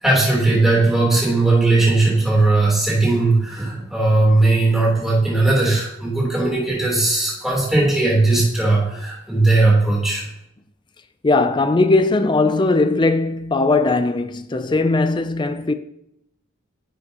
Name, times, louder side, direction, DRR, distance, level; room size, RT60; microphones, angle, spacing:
voice 1, 0.0-10.2, right 2 dB, ahead, 3.4 m, -18 dB
voice 2, 11.2-15.7, left 3 dB, 25° left, 0.4 m, -18 dB
11.5 x 7.8 x 2.9 m
head